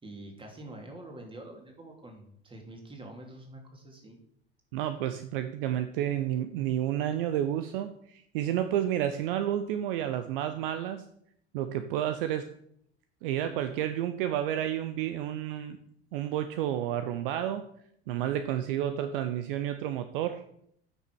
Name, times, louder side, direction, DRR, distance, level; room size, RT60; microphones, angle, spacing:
voice 1, 0.0-4.2, right 1 dB, 15° right, 2 dB, 2.9 m, -46 dB
voice 2, 4.7-11.0 11.5-12.5 13.2-15.8 16.1-17.7 18.1-20.4, right 11 dB, 55° right, 10 dB, 0.8 m, -30 dB
9.1 x 6.2 x 6.3 m, 0.69 s
figure-of-eight pair, 75°, 33 cm